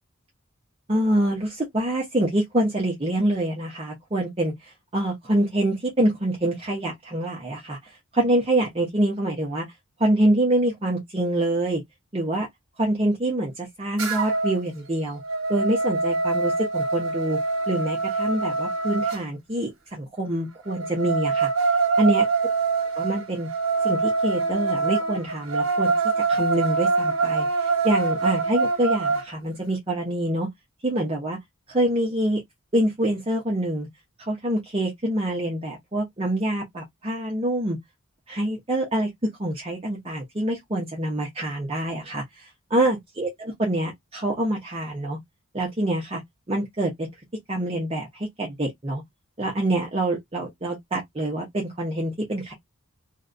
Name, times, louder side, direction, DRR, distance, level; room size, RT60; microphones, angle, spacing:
voice 1, 0.9-9.7 10.0-11.8 12.1-12.5 12.8-15.2 15.5-17.4 17.7-22.3 23.0-23.5 23.8-25.9 26.3-30.5 30.8-31.4 31.7-32.4 32.7-33.9 34.3-37.8 38.3-45.2 45.5-46.2 46.5-47.1 47.5-49.0 49.4-52.5, right 1 dB, 25° right, 0.6 m, -26 dB
sound 1, 14.0-14.6 15.0-19.2 20.7-29.3, right 4 dB, 70° right, 0.9 m, -24 dB
2.5 x 2.1 x 2.4 m
head